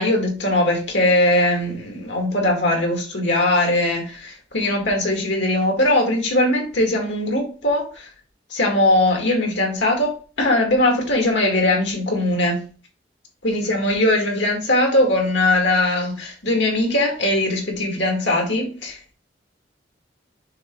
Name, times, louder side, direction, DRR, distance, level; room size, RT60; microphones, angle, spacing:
voice 1, 0.0-8.1 8.5-12.6 13.4-19.2, left 1 dB, 70° left, 2.2 m, -20 dB
6.4 x 3.5 x 4.6 m
head